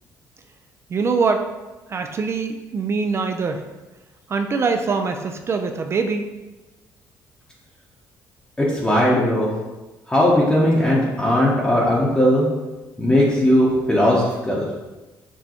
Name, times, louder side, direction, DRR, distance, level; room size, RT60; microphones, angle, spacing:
voice 1, 0.9-1.4 1.9-3.6 4.3-6.2, right 4 dB, 35° right, 6 dB, 0.3 m, -23 dB
voice 2, 8.6-9.5 10.1-12.5 13.0-14.7, left 1 dB, 10° left, -6 dB, 0.8 m, -18 dB
6.0 x 2.2 x 2.9 m, 1.1 s
cardioid pair, 95°, 7 cm